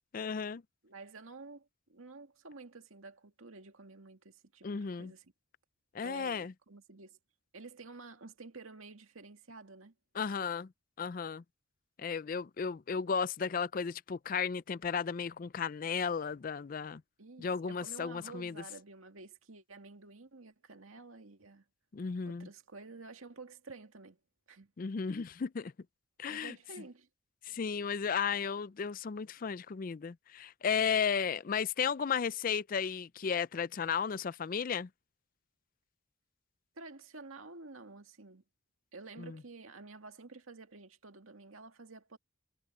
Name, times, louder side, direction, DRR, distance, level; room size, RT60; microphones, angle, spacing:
voice 1, 0.1-0.6 4.6-5.1 5.9-6.5 10.2-10.7 11.0-11.4 12.0-17.0 17.4-18.5 21.9-22.5 24.8-25.7 26.2-26.5 27.4-34.9 39.2-39.4, left 6 dB, 45° left, 0.4 m, -34 dB
voice 2, 0.8-5.3 6.0-7.2 7.5-9.9 17.2-21.6 22.2-24.2 24.5-24.7 26.3-27.1 36.8-38.4 38.9-42.2, right 3 dB, 90° right, 2.1 m, -51 dB
head